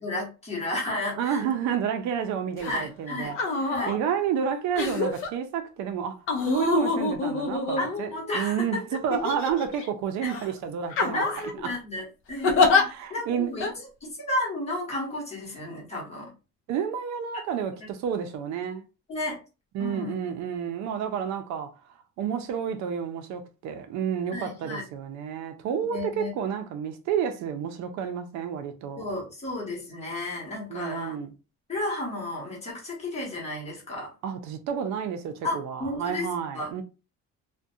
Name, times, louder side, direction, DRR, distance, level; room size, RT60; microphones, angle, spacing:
voice 1, 0.0-1.4 2.7-3.3 3.7-3.9 7.8-8.8 11.1-16.3 19.1-19.4 19.8-20.1 24.3-24.8 25.9-26.3 29.0-31.2 31.7-34.1 35.4-36.7, left 1 dB, 20° left, 1.1 m, -33 dB
voice 2, 1.2-3.4 3.9-6.2 6.4-11.2 11.6-11.7 12.8-13.5 16.7-18.9 19.7-21.7 22.2-29.1 30.7-31.3 34.2-36.8, right 8 dB, 70° right, 0.5 m, -30 dB
sound 1, 2.6-2.8 3.3-4.0 4.8-5.3 6.3-8.3 9.1-9.9 10.3-10.5 10.9-11.5 12.4-12.8 13.6-13.7, left 4 dB, 45° left, 0.5 m, -25 dB
2.4 x 2.2 x 2.6 m
cardioid pair, 175°, 29 cm